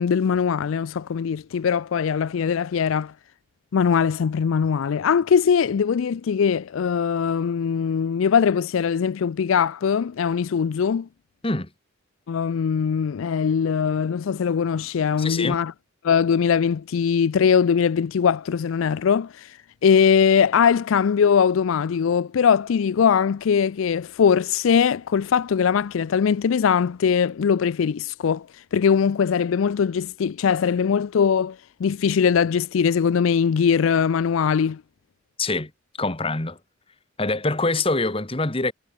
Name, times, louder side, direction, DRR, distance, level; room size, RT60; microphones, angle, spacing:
voice 1, 0.0-3.1 3.7-11.1 12.3-15.7 16.0-19.5 19.8-28.5 28.7-31.6 31.8-34.8, left 7 dB, 75° left, 0.4 m, -21 dB
voice 2, 15.2-15.6 35.4-35.7 36.0-36.6 37.2-38.7, left 2 dB, 25° left, 1.6 m, -24 dB
head